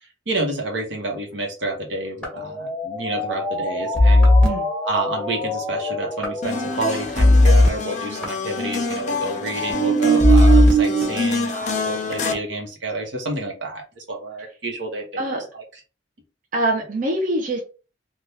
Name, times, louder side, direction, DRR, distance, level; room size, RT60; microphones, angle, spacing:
voice 1, 0.0-4.3 4.8-15.2 15.5-15.6, right 2 dB, 75° right, 1 dB, 1.1 m, -29 dB
sound 1, 2.2-6.8 7.2-7.7 8.2-8.3 9.7-11.0, equal, 5° left, 0.9 m, -17 dB
sound 2, 6.4-12.3, left 4 dB, 40° left, 0.5 m, -27 dB
voice 2, 16.5-17.6, right 1 dB, 45° right, 0 dB, 0.7 m, -23 dB
3.5 x 2.4 x 2.8 m, 0.34 s
head